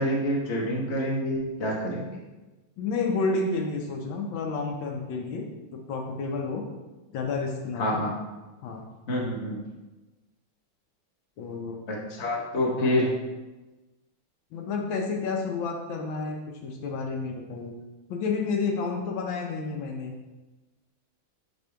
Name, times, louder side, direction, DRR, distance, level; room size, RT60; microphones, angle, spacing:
voice 1, 0.0-2.1 7.8-8.1 9.1-9.6 11.9-13.1, equal, 40° left, -3 dB, 1.3 m, -27 dB
voice 2, 2.8-6.6 7.1-8.0 8.6-8.9 11.4-11.8 12.8-12.9 14.5-17.7 18.1-20.2, left 4 dB, 80° left, 2 dB, 1.5 m, -30 dB
6.5 x 3.5 x 4.4 m, 1.1 s
omnidirectional pair, 2.1 m